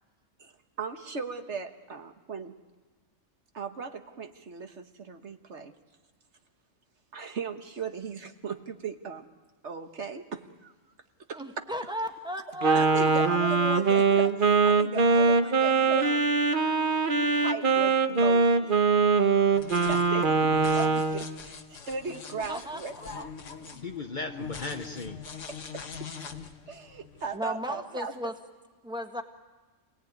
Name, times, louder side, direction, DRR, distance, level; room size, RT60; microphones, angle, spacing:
voice 1, 0.8-2.5 3.5-5.7 7.1-9.3 9.6-10.7 11.3-11.4 12.7-16.2 17.3-18.8 19.2-19.3 19.8-22.9 25.5-25.6 26.7-28.1, right 4 dB, 65° right, 7 dB, 1.5 m, -37 dB
voice 2, 11.3-13.2 22.4-23.0 27.3-28.3 28.8-29.2, equal, 5° right, 4 dB, 1.6 m, -35 dB
Wind instrument woodwind instrument, 12.6-21.2, right 4 dB, 45° right, 1.1 m, -23 dB
sound 1, 19.5-27.4, left 6 dB, 75° left, 1.6 m, -43 dB
voice 3, 23.0-25.4, left 3 dB, 40° left, 7 dB, 0.9 m, -38 dB
27.0 x 18.5 x 9.4 m, 1.3 s
omnidirectional pair, 1.3 m